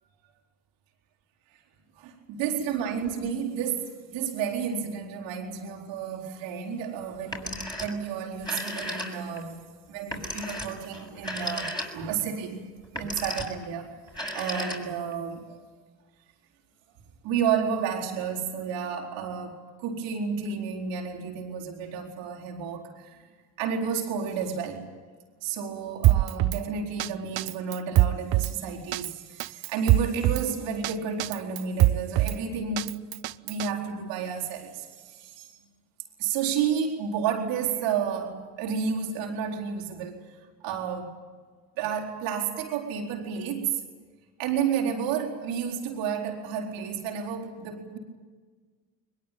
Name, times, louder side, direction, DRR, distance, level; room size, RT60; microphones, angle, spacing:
voice 1, 2.0-9.6 9.9-13.9 14.3-15.4 17.2-23.3 23.6-24.9 25.4-33.0 33.4-35.5 36.2-40.2 40.6-41.2 41.8-43.8 44.4-48.0, right 7 dB, 75° right, -1 dB, 4.4 m, -31 dB
Telephone, 7.2-8.0 8.3-9.4 10.1-12.2 12.8-13.6 14.1-15.1, left 1 dB, 10° left, 5.9 m, -35 dB
Drum kit, 26.0-26.6 27.0-27.1 27.4-28.5 28.9-29.1 29.4-30.4 30.8-30.9 31.2-32.4 32.8-33.7, right 16 dB, 55° right, 0.7 m, -22 dB
22.0 x 21.5 x 9.2 m, 1.5 s
hypercardioid pair, 60°, 44 cm